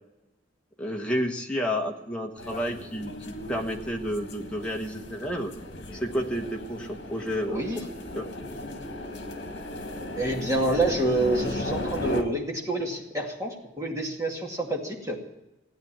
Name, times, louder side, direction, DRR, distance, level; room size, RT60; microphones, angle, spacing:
voice 1, 0.8-5.5 5.9-7.6 8.1-8.3, equal, 5° left, 1 dB, 1.4 m, -30 dB
sound 1, 2.4-12.2, left 1 dB, 60° left, 1.9 m, -36 dB
voice 2, 7.5-7.8 10.2-15.2, right 2 dB, 15° right, 0 dB, 2.2 m, -27 dB
16.0 x 9.5 x 8.8 m, 0.99 s
head